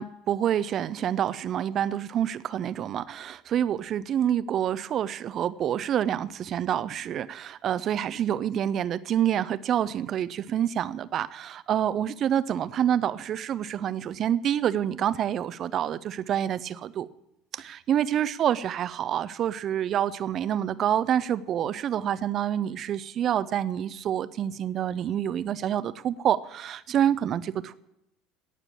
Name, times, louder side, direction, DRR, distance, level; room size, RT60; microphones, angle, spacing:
voice 1, 0.0-17.1 17.5-27.8, right 10 dB, 45° right, 16 dB, 0.7 m, -27 dB
17.5 x 6.8 x 8.7 m, 0.88 s
hypercardioid pair, 70°, 0 cm